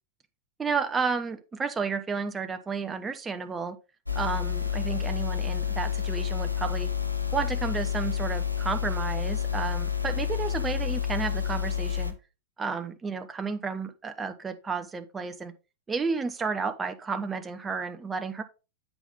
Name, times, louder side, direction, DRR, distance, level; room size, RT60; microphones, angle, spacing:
voice 1, 0.6-3.8 4.1-6.9 7.3-12.1 12.6-15.5 15.9-18.4, right 5 dB, 15° right, 0.9 m, -32 dB
sound 1, 4.1-12.1, left 8 dB, 85° left, 0.8 m, -29 dB
8.0 x 5.6 x 3.6 m
figure-of-eight pair, 90°, 0 cm